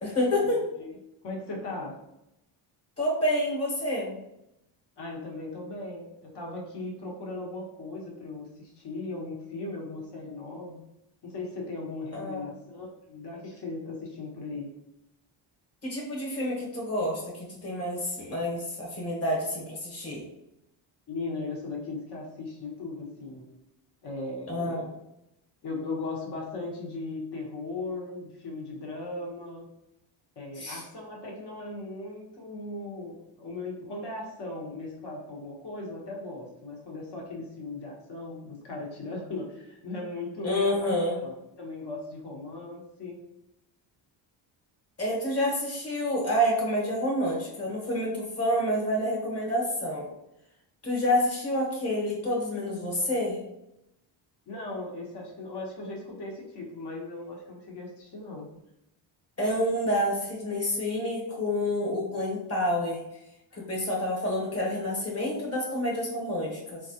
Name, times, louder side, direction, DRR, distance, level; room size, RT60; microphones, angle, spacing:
voice 1, 0.0-0.6 3.0-4.2 12.1-12.4 15.8-20.2 24.5-24.9 30.6-30.8 40.4-41.2 45.0-50.1 50.8-53.4 59.4-63.0 63.7-66.8, left 1 dB, 30° left, -3 dB, 1.3 m, -28 dB
voice 2, 1.2-1.9 5.0-10.8 11.2-14.7 21.1-23.5 24.0-24.9 25.6-29.7 30.4-40.9 41.2-43.2 54.5-58.5 63.5-63.7, left 2 dB, 55° left, -1 dB, 1.2 m, -38 dB
3.8 x 2.4 x 2.8 m, 0.85 s
cardioid pair, 110°, 48 cm